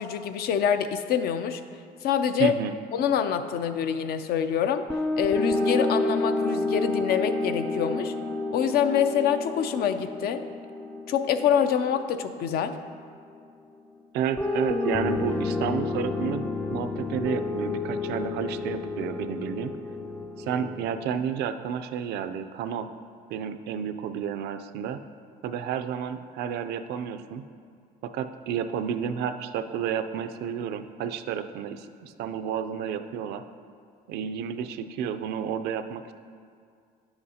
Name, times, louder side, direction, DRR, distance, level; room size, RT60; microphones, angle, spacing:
voice 1, 0.0-1.6 2.0-2.5 2.9-4.9 5.2-8.1 8.5-10.4 11.1-12.7, left 8 dB, 65° left, 9 dB, 0.5 m, -25 dB
voice 2, 2.4-2.7 14.1-19.7 20.4-22.9 23.3-25.0 25.4-27.5 28.0-33.4 34.1-36.1, right 8 dB, 75° right, 10 dB, 0.4 m, -31 dB
sound 1, 4.9-13.0 14.4-21.0, left 2 dB, 10° left, 0.3 m, -30 dB
9.9 x 7.9 x 2.8 m, 2.2 s
cardioid pair, 110°, 17 cm